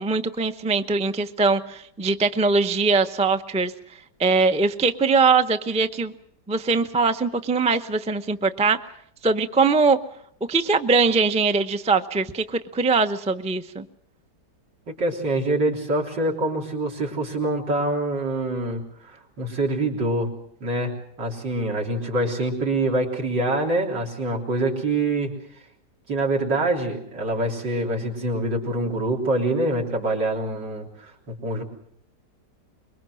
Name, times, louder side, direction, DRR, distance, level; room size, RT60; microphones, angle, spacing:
voice 1, 0.0-3.7 4.2-6.1 6.5-8.8 9.2-10.0 10.5-13.8, right 4 dB, 10° right, 9 dB, 0.3 m, -21 dB
voice 2, 14.9-20.3 20.6-25.3 26.1-31.6, right 2 dB, 90° right, -1 dB, 4.4 m, -25 dB
24.5 x 22.5 x 6.4 m, 0.70 s
omnidirectional pair, 1.9 m